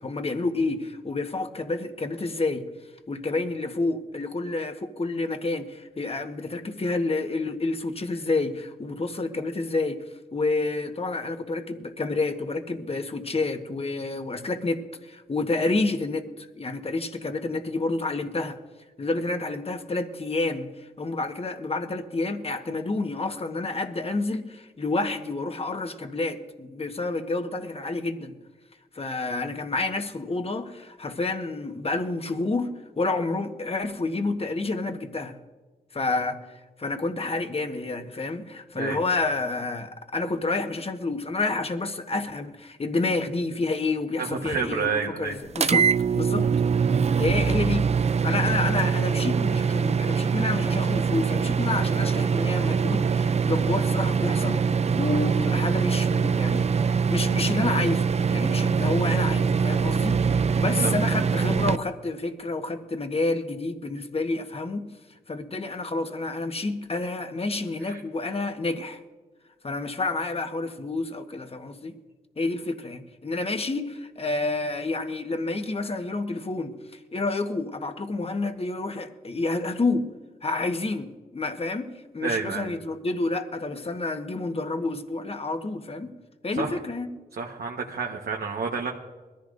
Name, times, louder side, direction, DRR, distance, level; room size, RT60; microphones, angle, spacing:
voice 1, 0.0-2.6 3.1-18.6 19.0-28.4 28.9-35.3 35.9-45.9 46.1-46.5 46.9-47.9 48.2-56.7 57.1-64.8 65.3-69.0 69.6-72.0 72.4-80.1 80.4-81.9 82.1-86.1 86.4-87.1, left 3 dB, 40° left, 6 dB, 1.3 m, -29 dB
voice 2, 44.2-45.4 60.8-60.9 67.8-68.0 82.2-82.7 86.5-86.8 87.4-88.9, right 5 dB, 80° right, 0 dB, 1.3 m, -29 dB
sound 1, 45.5-61.8, right 6 dB, 45° right, 0.4 m, -23 dB
21.5 x 14.5 x 2.6 m, 1.3 s
cardioid pair, 65°, 16 cm